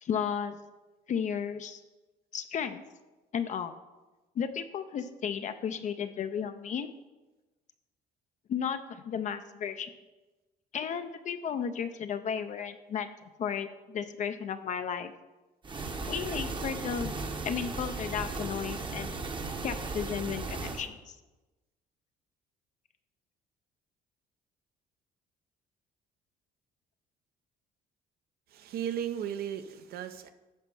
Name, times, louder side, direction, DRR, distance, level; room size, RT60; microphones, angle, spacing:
voice 1, 0.0-0.6 1.1-1.8 2.3-2.8 3.3-3.7 4.4-6.9 8.5-9.9 10.7-15.1 16.1-17.1 17.4-19.1 19.6-21.2, left 7 dB, 45° left, 9 dB, 0.5 m, -34 dB
sound 1, 15.6-20.9, right 3 dB, 30° right, 0.9 m, -36 dB
voice 2, 28.5-30.3, right 9 dB, 65° right, 10 dB, 0.7 m, -35 dB
10.5 x 4.2 x 5.4 m, 1.1 s
cardioid pair, 110°, 17 cm